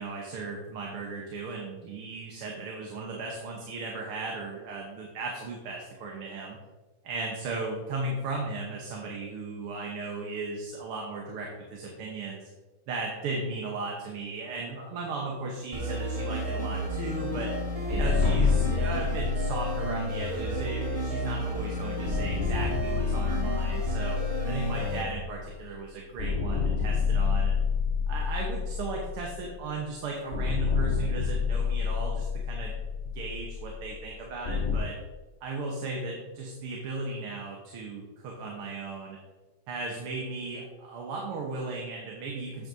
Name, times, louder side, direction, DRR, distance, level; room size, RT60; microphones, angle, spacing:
voice 1, 0.0-6.6 7.0-12.5 12.9-17.5 17.9-24.2 24.5-27.6 28.1-35.0 35.4-39.2 39.7-42.7, right 3 dB, 85° right, -1 dB, 2.0 m, -36 dB
sound 1, 15.7-25.0, equal, 20° right, 1.0 m, -32 dB
sound 2, 17.9-21.5 22.0-25.8 26.2-29.8 30.3-34.8, left 5 dB, 75° left, 0.6 m, -29 dB
9.1 x 7.7 x 2.7 m, 1.2 s
omnidirectional pair, 2.4 m